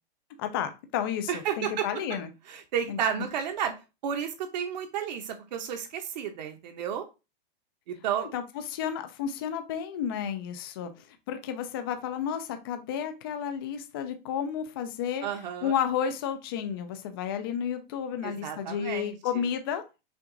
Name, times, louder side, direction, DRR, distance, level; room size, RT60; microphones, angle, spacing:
voice 1, 0.4-2.3 2.9-3.0 8.2-8.4 8.7-15.3 15.6-19.8, left 8 dB, 25° left, 8 dB, 0.3 m, -32 dB
voice 2, 1.3-1.9 2.5-3.7 4.0-7.1 7.9-8.3 15.2-15.7 18.2-19.4, right 8 dB, 50° right, 5 dB, 0.8 m, -32 dB
5.8 x 2.4 x 3.8 m, 0.28 s
supercardioid pair, 170°, 29 cm